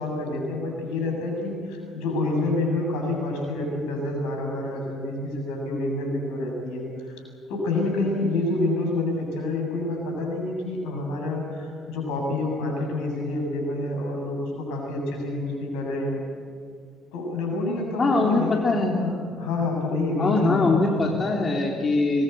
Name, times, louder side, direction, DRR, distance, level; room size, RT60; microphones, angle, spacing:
voice 1, 0.0-7.2 7.5-16.2 17.1-18.6 18.9-21.2, left 2 dB, 75° left, 1 dB, 7.0 m, -28 dB
voice 2, 18.0-19.0 20.2-22.2, left 3 dB, 40° left, 0 dB, 3.4 m, -22 dB
25.0 x 21.5 x 8.1 m, 2.2 s
hypercardioid pair, 50°, 0 cm